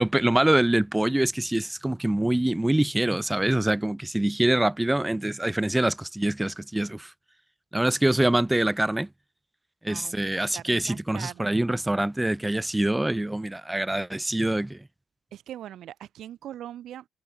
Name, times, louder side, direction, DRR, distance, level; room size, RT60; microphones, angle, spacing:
voice 1, 0.0-7.1 7.7-9.1 9.8-14.8, right 1 dB, 10° right, 0.5 m, -24 dB
voice 2, 9.9-11.6 15.3-17.1, right 11 dB, 75° right, 2.2 m, -41 dB
cardioid pair, 90°, 0 cm